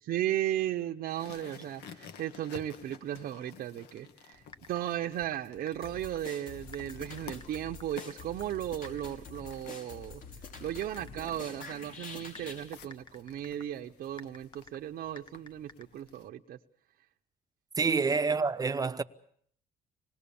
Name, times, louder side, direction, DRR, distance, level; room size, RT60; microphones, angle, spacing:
voice 1, 0.0-4.4 4.7-10.2 10.6-16.6 17.9-18.0, right 12 dB, 60° right, 0.9 m, -36 dB
sound 1, 1.1-16.3, left 7 dB, 80° left, 1.6 m, -53 dB
Typing, 4.3-16.2, left 3 dB, 25° left, 2.0 m, -56 dB
sound 2, 5.8-12.7, left 4 dB, 55° left, 5.6 m, -46 dB
voice 2, 17.8-19.0, right 4 dB, 20° right, 0.9 m, -27 dB
26.5 x 20.0 x 7.1 m
cardioid pair, 110°, 17 cm